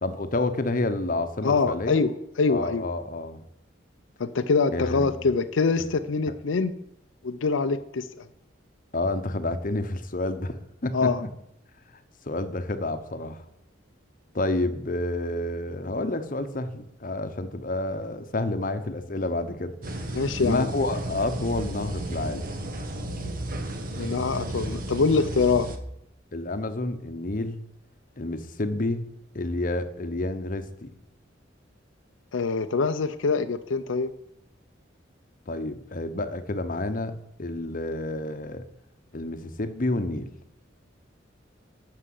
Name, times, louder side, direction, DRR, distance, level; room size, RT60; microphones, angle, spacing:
voice 1, 0.0-2.0 2.5-3.4 4.7-5.2 8.9-10.5 10.8-11.3 12.2-13.4 14.3-22.5 26.3-27.6 28.2-29.1 29.3-30.9 35.5-37.1 37.4-38.6 39.1-40.3, left 2 dB, 45° left, 10 dB, 0.9 m, -29 dB
voice 2, 1.4-2.1 2.4-2.8 4.2-6.7 7.2-8.3 10.9-11.2 20.1-20.7 24.0-25.7 32.3-34.1, left 4 dB, 90° left, 9 dB, 0.6 m, -24 dB
sound 1, 19.8-25.8, right 1 dB, 50° right, 1.1 m, -33 dB
9.9 x 6.7 x 7.7 m, 0.80 s
head